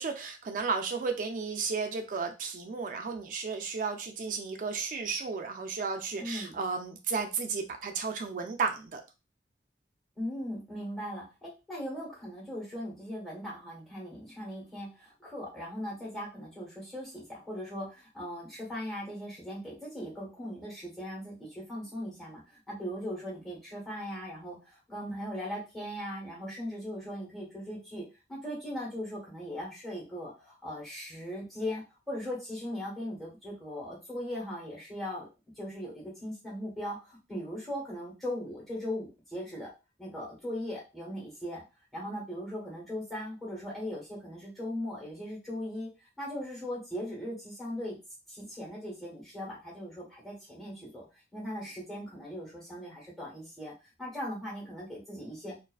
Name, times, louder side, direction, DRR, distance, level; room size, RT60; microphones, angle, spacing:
voice 1, 0.0-9.0, right 5 dB, 45° right, 5 dB, 0.3 m, -33 dB
voice 2, 6.2-6.6 10.2-28.0 28.3-35.3 35.6-39.7 40.0-41.6 41.9-45.9 46.2-48.0 48.3-51.1 51.3-53.7 54.0-55.6, equal, ahead, -6 dB, 1.0 m, -39 dB
2.4 x 2.3 x 2.3 m, 0.28 s
head